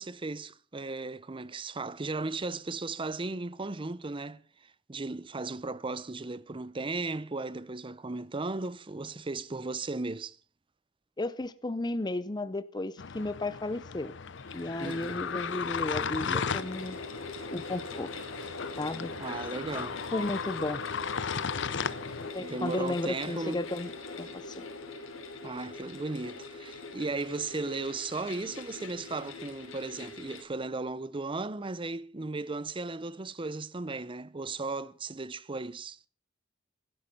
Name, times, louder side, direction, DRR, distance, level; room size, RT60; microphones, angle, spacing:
voice 1, 0.0-10.4 14.8-15.2 19.2-20.0 22.4-23.6 25.4-36.0, right 3 dB, 25° right, 0.6 m, -36 dB
voice 2, 11.2-14.1 14.5-17.0 17.5-18.1 18.8-19.1 20.1-20.8 22.2-23.9 24.2-24.6, left 2 dB, 20° left, 0.6 m, -34 dB
sound 1, 13.0-22.3, left 6 dB, 60° left, 0.7 m, -36 dB
sound 2, 14.2-30.4, left 3 dB, 80° left, 3.1 m, -42 dB
15.0 x 12.5 x 5.5 m
head